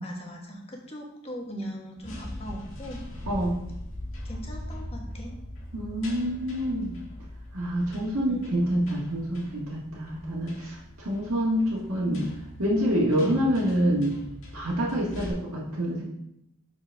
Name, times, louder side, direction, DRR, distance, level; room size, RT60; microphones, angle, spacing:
voice 1, 0.0-3.4 4.2-5.4 8.3-8.4, equal, 30° left, 0 dB, 1.3 m, -40 dB
sound 1, 2.0-15.3, left 1 dB, 65° left, 1.9 m, -41 dB
voice 2, 3.3-3.6 5.7-7.0 7.5-12.2 12.6-14.2 14.5-16.0, equal, 85° right, -6 dB, 1.6 m, -27 dB
6.6 x 6.2 x 3.4 m, 0.80 s
head